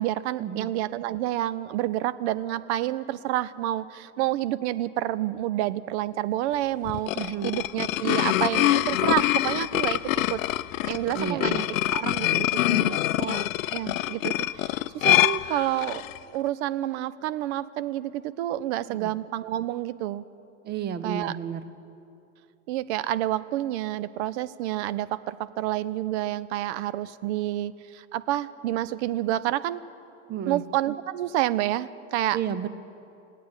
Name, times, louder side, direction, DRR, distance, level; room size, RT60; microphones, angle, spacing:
voice 1, 0.0-10.0 10.3-10.4 10.8-13.5 13.7-16.0 16.3-20.2 21.0-21.3 22.7-29.8 30.5-32.4, right 14 dB, 60° right, 17 dB, 0.7 m, -29 dB
sound 1, 6.8-16.2, left 14 dB, 85° left, 0.5 m, -25 dB
voice 2, 7.1-7.5 11.2-11.6 18.9-19.1 20.6-21.7 30.3-30.6 32.3-32.7, right 8 dB, 25° right, 12 dB, 0.8 m, -31 dB
16.5 x 9.3 x 8.8 m, 2.7 s
hypercardioid pair, 110°, 39 cm